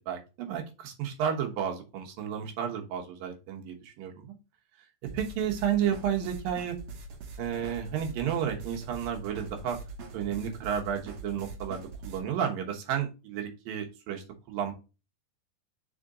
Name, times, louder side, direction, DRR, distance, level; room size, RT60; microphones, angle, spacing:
voice 1, 0.1-4.3 5.1-6.8 7.4-9.8 10.1-14.7, right 8 dB, 70° right, 2 dB, 2.6 m, -32 dB
sound 1, 5.0-12.2, right 3 dB, 85° right, 1.5 m, -43 dB
5.0 x 5.0 x 3.7 m, 0.30 s
omnidirectional pair, 4.7 m